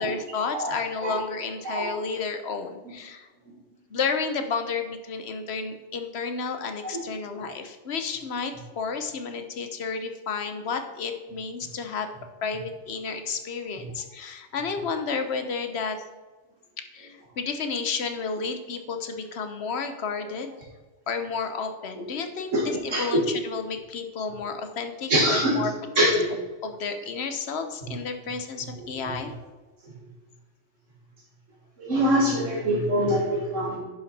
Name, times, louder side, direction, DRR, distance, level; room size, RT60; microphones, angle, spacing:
voice 1, 0.0-3.3 3.9-12.1 12.4-16.1 16.9-20.6 21.1-25.7 26.0-26.1 26.6-29.3, left 5 dB, 60° left, 7 dB, 1.1 m, -31 dB
voice 2, 22.9-23.2 25.1-25.6 26.0-26.3 31.8-33.8, equal, 90° right, -4 dB, 2.2 m, -23 dB
10.5 x 5.6 x 4.2 m, 1.2 s
omnidirectional pair, 1.3 m